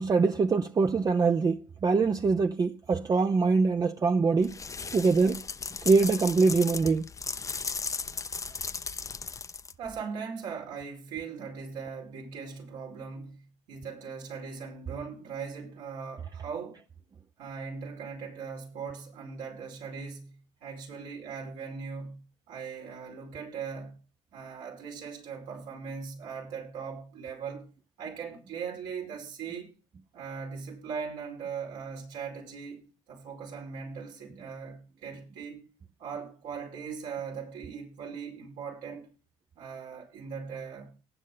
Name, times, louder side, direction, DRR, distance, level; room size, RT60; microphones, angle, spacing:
voice 1, 0.0-4.6 4.9-5.4 5.8-7.1, right 4 dB, 30° right, 0.5 m, -24 dB
sound 1, 4.4-10.0, left 5 dB, 25° left, 0.6 m, -36 dB
voice 2, 9.8-16.8 17.4-22.2 22.5-24.0 24.3-27.7 28.0-29.7 30.1-35.7 36.0-39.1 39.5-40.9, right 6 dB, 85° right, 5.0 m, -39 dB
19.0 x 6.3 x 3.9 m
supercardioid pair, 80°, 13 cm